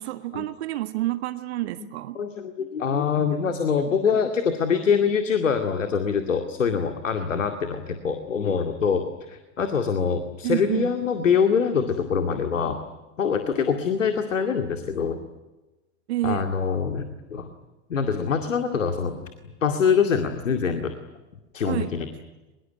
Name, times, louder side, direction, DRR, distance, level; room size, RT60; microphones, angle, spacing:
voice 1, 0.0-2.2 10.4-10.9 16.1-16.5 21.6-22.0, right 16 dB, 55° right, 1.6 m, -29 dB
voice 2, 2.2-12.8 13.2-15.2 16.2-17.5 17.9-19.2 19.6-20.9 21.5-22.1, left 6 dB, 70° left, 2.4 m, -24 dB
23.5 x 22.0 x 10.0 m
figure-of-eight pair, 90°, 39 cm